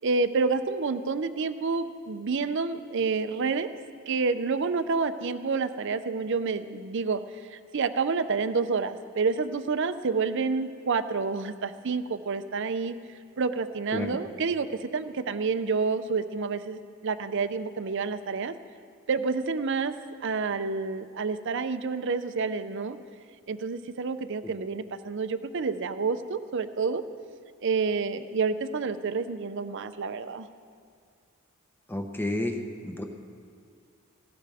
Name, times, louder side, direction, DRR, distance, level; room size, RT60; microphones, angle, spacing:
voice 1, 0.0-3.7 4.1-18.5 19.1-23.0 23.5-27.0 27.6-30.5, right 4 dB, 55° right, 11 dB, 0.6 m, -29 dB
voice 2, 31.9-33.0, left 1 dB, 10° left, 4 dB, 0.9 m, -31 dB
18.0 x 16.5 x 3.5 m, 2.3 s
head